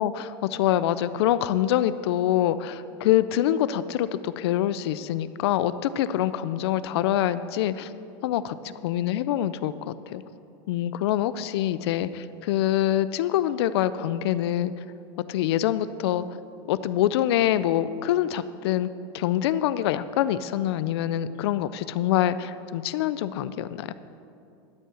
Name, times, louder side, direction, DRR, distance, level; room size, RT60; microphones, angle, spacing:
voice 1, 0.0-7.9 8.2-10.2 10.7-14.7 15.3-16.2 16.7-18.9 19.1-23.9, left 12 dB, 70° left, 15 dB, 0.4 m, -25 dB
12.5 x 5.5 x 7.7 m, 2.6 s
supercardioid pair, 175°, 14 cm